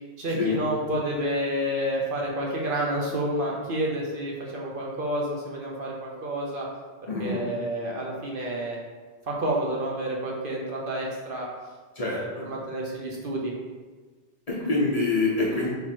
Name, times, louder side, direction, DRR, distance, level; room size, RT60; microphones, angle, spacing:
voice 1, 0.2-6.7 7.2-8.8 9.3-11.5 12.0-13.5, right 1 dB, 55° right, -2 dB, 0.8 m, -29 dB
voice 2, 7.1-7.5 12.0-12.5 14.5-15.7, left 3 dB, 40° left, -6 dB, 0.8 m, -26 dB
3.6 x 3.0 x 4.2 m, 1.4 s
omnidirectional pair, 1.1 m